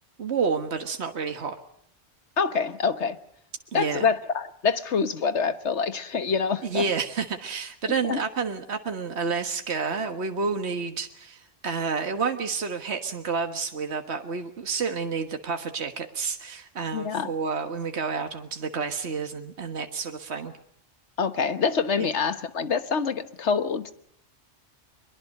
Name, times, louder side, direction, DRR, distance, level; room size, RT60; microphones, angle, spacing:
voice 1, 0.2-1.6 3.7-4.1 6.6-20.5, right 5 dB, 75° right, 6 dB, 1.8 m, -29 dB
voice 2, 2.4-3.2 3.7-6.8 8.0-8.2 16.9-17.3 21.2-23.9, left 5 dB, 85° left, 11 dB, 1.6 m, -26 dB
23.5 x 22.5 x 6.5 m, 0.68 s
omnidirectional pair, 1.1 m